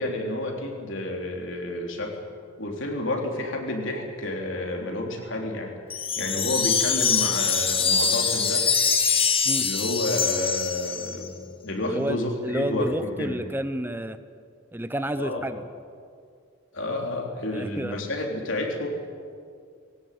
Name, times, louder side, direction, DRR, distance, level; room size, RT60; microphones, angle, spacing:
voice 1, 0.0-2.2 2.6-8.6 9.6-13.4 15.2-15.4 16.7-18.9, left 1 dB, 65° left, 1 dB, 3.8 m, -30 dB
Wind chime, 5.9-11.3, left 6 dB, 25° left, 1.6 m, -24 dB
voice 2, 11.9-14.2 14.7-15.6 17.5-18.0, right 1 dB, 10° right, 11 dB, 0.8 m, -30 dB
21.5 x 16.5 x 9.5 m, 2.2 s
head